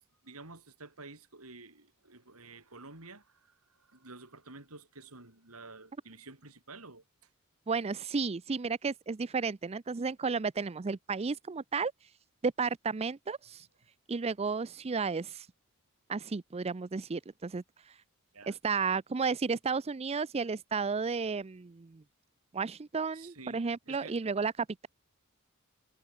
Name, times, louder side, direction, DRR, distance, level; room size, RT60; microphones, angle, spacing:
voice 1, 0.0-7.0 18.3-18.5 23.1-24.2, right 3 dB, 85° right, 5.8 m, -51 dB
voice 2, 7.7-11.9 12.4-13.7 14.1-15.5 16.1-18.0 18.5-22.0 22.5-24.5, right 5 dB, 30° right, 0.5 m, -33 dB
head